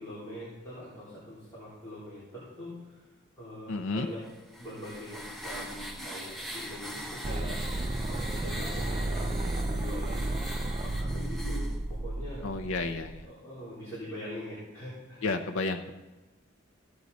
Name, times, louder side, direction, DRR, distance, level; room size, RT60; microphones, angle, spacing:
voice 1, 0.0-3.1 3.4-4.2 4.6-7.6 8.0-12.5 13.2-15.2, left 1 dB, 15° left, -10 dB, 3.6 m, -43 dB
voice 2, 3.7-4.1 12.4-13.3 15.2-15.9, left 3 dB, 80° left, 5 dB, 0.6 m, -31 dB
sound 1, 4.2-11.8, equal, ahead, 0.9 m, -41 dB
sound 2, 7.2-13.2, right 2 dB, 25° right, 0.4 m, -33 dB
15.5 x 8.0 x 4.1 m, 1.1 s
head